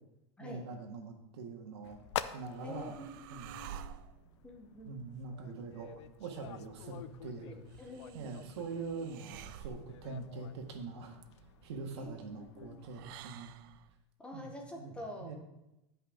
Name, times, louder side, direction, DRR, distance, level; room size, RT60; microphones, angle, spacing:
voice 1, 0.4-3.0 3.3-3.8 4.8-7.6 8.1-11.2 11.6-13.5 14.3-15.4, right 4 dB, 70° right, 3 dB, 1.7 m, -44 dB
sound 1, 1.8-13.1, left 11 dB, 80° left, 0.5 m, -48 dB
sound 2, 2.0-14.0, right 9 dB, 50° right, 0.4 m, -53 dB
voice 2, 2.6-3.8 4.4-5.0 7.4-8.3 12.0-12.2 12.5-12.8 14.2-15.3, left 1 dB, 5° left, 1 dB, 0.8 m, -47 dB
10.0 x 5.5 x 5.0 m, 0.93 s
supercardioid pair, 175°, 15 cm